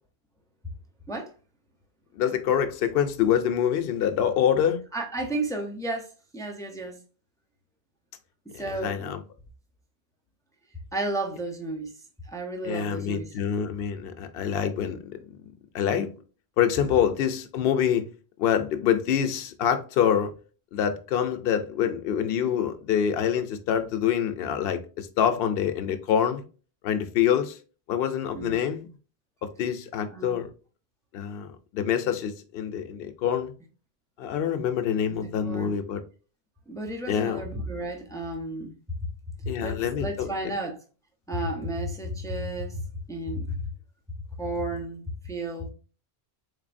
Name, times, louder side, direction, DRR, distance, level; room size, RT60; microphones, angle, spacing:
voice 1, 2.2-4.8 8.5-9.2 12.6-15.2 15.7-16.1 16.6-18.0 18.4-20.3 20.7-26.4 26.8-27.6 27.9-28.9 29.4-30.5 31.1-33.5 34.2-36.0 37.1-37.4 39.5-40.3, left 9 dB, 70° left, 0.8 m, -26 dB
voice 2, 4.9-7.0 8.6-9.1 10.9-12.0 12.2-13.3 28.3-28.6 30.1-30.4 35.1-35.8 36.7-38.7 39.0-39.1 39.4-40.8 41.3-43.6 44.4-45.7, right 1 dB, 5° left, 0.5 m, -32 dB
3.8 x 3.3 x 2.5 m
omnidirectional pair, 1.1 m